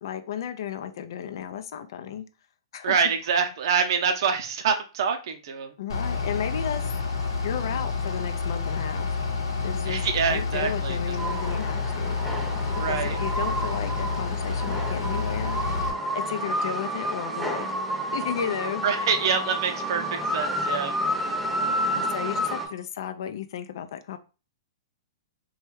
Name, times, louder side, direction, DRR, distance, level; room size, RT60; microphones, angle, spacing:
voice 1, 0.0-2.2 2.7-3.1 5.8-7.0 7.4-9.1 9.6-12.2 12.7-15.6 16.1-17.7 18.1-18.8 21.9-24.2, left 9 dB, 65° left, 9 dB, 0.4 m, -34 dB
voice 2, 2.8-5.7 9.9-11.0 12.8-13.2 18.8-20.9, right 6 dB, 60° right, 5 dB, 0.6 m, -26 dB
Bus / Idling, 5.9-15.9, left 4 dB, 85° left, 0.8 m, -29 dB
sound 1, 11.2-22.7, equal, 5° right, 0.7 m, -30 dB
3.1 x 2.3 x 3.1 m, 0.33 s
hypercardioid pair, 125°, 2 cm